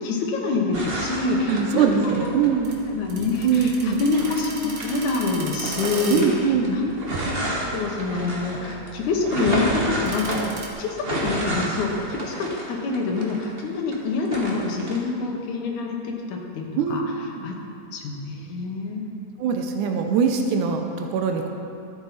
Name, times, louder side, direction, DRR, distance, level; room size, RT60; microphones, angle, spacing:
voice 1, 0.0-2.3 2.9-6.9 7.4-10.5 10.8-17.0 17.4-17.6 17.9-19.1, left 3 dB, 80° left, 0 dB, 2.6 m, -26 dB
sound 1, 0.7-2.8 3.3-5.2 5.6-14.0 14.3-15.0, right 1 dB, 70° right, 0.5 m, -30 dB
voice 2, 1.5-2.8 3.4-4.0 6.1-6.7 16.8-17.0 17.3-17.5 19.4-21.5, right 6 dB, 90° right, 4 dB, 2.2 m, -22 dB
sound 2, 1.9-10.7, right 2 dB, 55° right, 1.0 m, -39 dB
13.5 x 8.7 x 4.1 m, 2.6 s
omnidirectional pair, 3.4 m